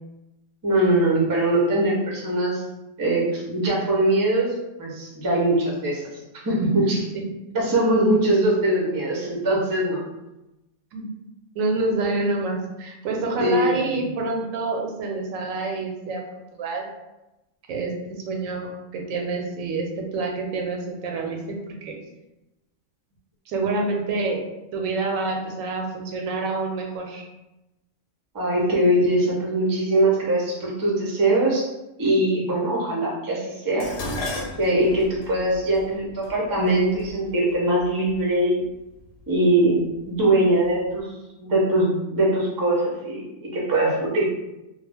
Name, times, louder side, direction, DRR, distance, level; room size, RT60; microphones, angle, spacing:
voice 1, 0.6-2.6 3.0-6.1 6.4-7.1 7.5-10.0 13.4-14.0 28.3-31.7 32.0-33.9 34.6-38.6 39.3-41.1 41.4-44.2, right 1 dB, 25° right, -4 dB, 0.4 m, -22 dB
voice 2, 6.8-7.2 10.9-11.1 11.5-16.2 16.5-16.9 17.7-22.0 23.5-24.4 24.7-27.3, right 3 dB, 85° right, 1 dB, 1.0 m, -27 dB
Dishes pots and pans, 33.8-38.2 39.0-39.4 39.8-40.7 40.9-41.0, left 1 dB, 65° left, 0.9 m, -35 dB
2.3 x 2.1 x 3.3 m, 0.97 s
omnidirectional pair, 1.3 m